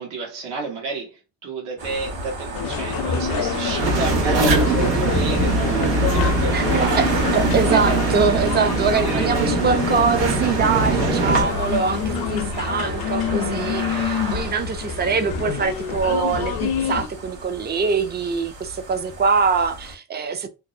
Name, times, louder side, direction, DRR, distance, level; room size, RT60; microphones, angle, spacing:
voice 1, 0.0-7.2 7.7-8.0 8.7-9.6, right 4 dB, 70° right, 1.1 m, -31 dB
sound 1, 1.8-19.9, right 1 dB, 45° right, 1.2 m, -32 dB
sound 2, 2.5-17.1, left 6 dB, 55° left, 0.5 m, -27 dB
sound 3, 3.8-11.4, right 3 dB, 90° right, 0.9 m, -22 dB
voice 2, 6.5-7.1 7.3-20.5, right 5 dB, 25° right, 0.4 m, -23 dB
2.7 x 2.0 x 2.4 m
supercardioid pair, 65°, 45 cm